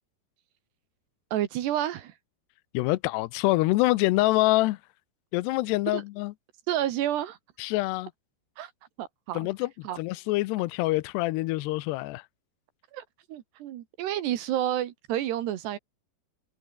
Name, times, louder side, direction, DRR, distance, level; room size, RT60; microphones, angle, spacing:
voice 1, 1.3-2.1 5.9-6.0 6.7-7.4 8.6-8.7 9.0-9.4 9.9-10.0 12.9-13.0 13.3-15.8, right 12 dB, 75° right, 3.5 m, -30 dB
voice 2, 2.7-4.8 5.3-6.3 7.6-8.1 9.3-12.3, left 19 dB, 85° left, 2.7 m, -26 dB
omnidirectional pair, 5.0 m